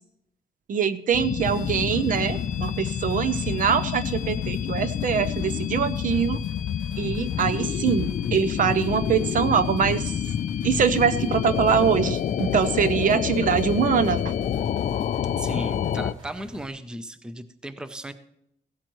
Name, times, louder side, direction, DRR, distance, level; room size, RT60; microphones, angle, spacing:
voice 1, 0.7-6.4 7.0-10.1 10.6-14.3, right 7 dB, 50° right, 13 dB, 0.7 m, -23 dB
sound 1, 1.1-16.1, left 9 dB, 50° left, 0.4 m, -28 dB
sound 2, 1.4-16.7, right 1 dB, 30° right, 3.1 m, -45 dB
voice 2, 15.4-18.1, right 1 dB, 5° right, 10 dB, 0.6 m, -36 dB
16.5 x 13.0 x 3.1 m, 0.79 s
wide cardioid pair, 175°, 17 cm